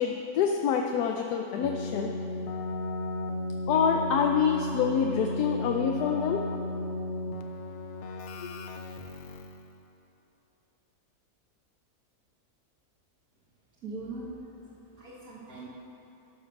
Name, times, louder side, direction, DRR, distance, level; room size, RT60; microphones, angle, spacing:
voice 1, 0.0-2.1 3.7-6.4 8.4-8.6, left 7 dB, 90° left, 2 dB, 1.1 m, -26 dB
Keyboard (musical), 1.6-9.7, left 2 dB, 60° left, 0.8 m, -34 dB
voice 2, 13.8-14.3 14.6-14.7 15.0-15.7, right 3 dB, 65° right, -7 dB, 1.7 m, -40 dB
13.5 x 5.2 x 6.0 m, 2.9 s
omnidirectional pair, 1.6 m